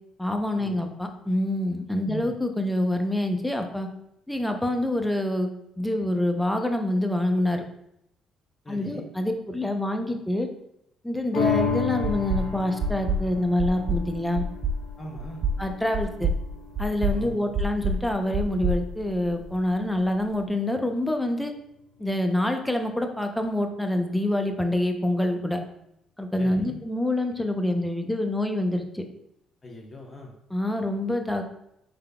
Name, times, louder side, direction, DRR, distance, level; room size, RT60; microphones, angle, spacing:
voice 1, 0.2-3.9 4.3-5.5 5.8-7.6 8.7-10.5 11.0-14.4 15.6-16.3 16.8-21.5 22.0-25.6 26.2-29.0 30.5-31.4, left 1 dB, 5° left, 4 dB, 0.7 m, -26 dB
voice 2, 2.0-2.4 8.6-9.0 15.0-15.4 17.1-17.4 26.4-26.8 29.6-30.3, equal, 30° left, -1 dB, 1.0 m, -39 dB
sound 1, 11.3-18.0 18.5-18.6, left 7 dB, 70° left, 0.6 m, -32 dB
sound 2, 11.6-11.7 12.0-12.5 12.8-13.2 13.6-14.0 14.4-14.8 15.2-15.6 15.9-16.4 16.8-17.2 17.5-18.0 18.3-19.5, right 2 dB, 60° right, 0.4 m, -26 dB
5.0 x 3.4 x 2.3 m, 0.78 s
hypercardioid pair, 50°, 0 cm